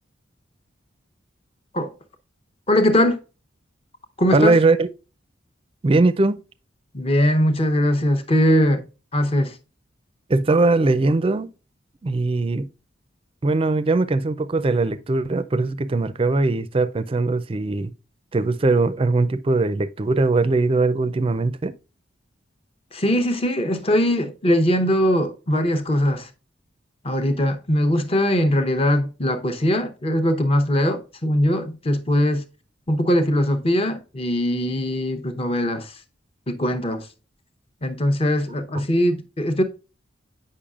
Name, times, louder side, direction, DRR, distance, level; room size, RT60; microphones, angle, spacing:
voice 1, 2.7-3.2 4.2-4.5 6.9-8.8 9.1-9.6 22.9-26.3 27.0-32.4 32.9-36.0 36.5-37.1 37.8-39.6, equal, 30° left, 0.8 m, -21 dB
voice 2, 4.3-4.9 5.8-6.4 10.3-11.5 12.0-12.7 13.4-17.9 18.3-21.8, right 3 dB, 30° right, 0.4 m, -20 dB
8.5 x 5.5 x 2.4 m
head